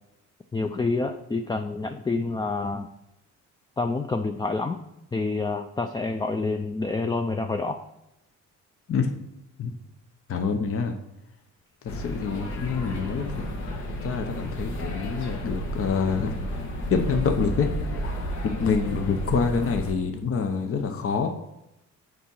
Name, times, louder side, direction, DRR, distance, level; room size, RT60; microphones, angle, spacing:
voice 1, 0.5-2.9 3.8-4.8 5.1-7.8, left 3 dB, 15° left, 6 dB, 0.4 m, -28 dB
voice 2, 10.3-10.9 11.8-13.3 14.0-16.3 16.9-21.3, left 5 dB, 50° left, 5 dB, 0.8 m, -26 dB
sound 1, 11.9-19.9, equal, 65° left, 1.4 m, -32 dB
7.1 x 4.8 x 5.5 m, 0.86 s
cardioid pair, 90°, 30 cm